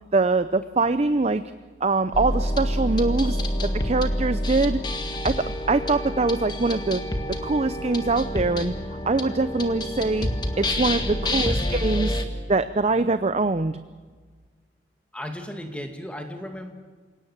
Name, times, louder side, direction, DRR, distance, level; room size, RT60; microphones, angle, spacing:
voice 1, 0.1-1.4 1.8-3.4 3.8-4.8 5.2-7.0 7.4-8.7 9.1-10.3 10.6-13.8, right 3 dB, 35° right, 11 dB, 0.6 m, -23 dB
sound 1, 2.1-12.3, left 1 dB, 25° left, 1.7 m, -27 dB
voice 2, 15.1-16.7, equal, 5° left, 4 dB, 2.4 m, -36 dB
28.0 x 17.5 x 7.3 m, 1.5 s
head